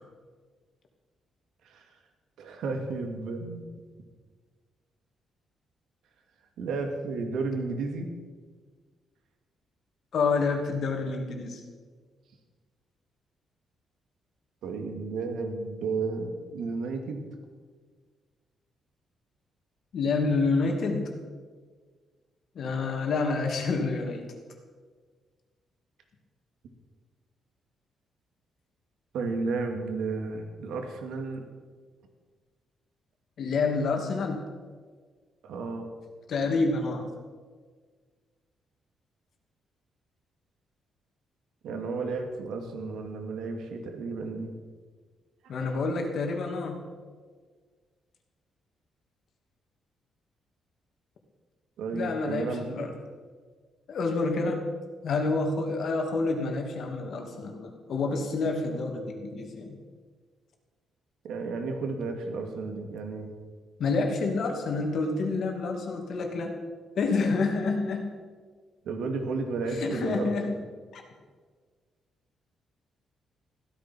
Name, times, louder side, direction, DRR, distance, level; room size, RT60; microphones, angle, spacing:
voice 1, 2.4-3.6 6.6-8.1 14.6-17.3 29.1-31.4 35.4-35.8 41.6-44.5 45.6-45.7 51.8-52.9 61.2-63.3 68.8-70.6, right 3 dB, 75° right, 4 dB, 2.5 m, -32 dB
voice 2, 10.1-11.6 19.9-21.1 22.5-24.3 33.4-34.5 36.3-37.1 45.5-46.9 51.9-52.9 53.9-54.6 55.0-59.8 63.8-66.5 67.0-68.1 69.7-70.6 70.9-71.0, left 3 dB, 55° left, 3 dB, 2.6 m, -28 dB
15.5 x 13.0 x 6.1 m, 1.5 s
cardioid pair, 155°, 0 cm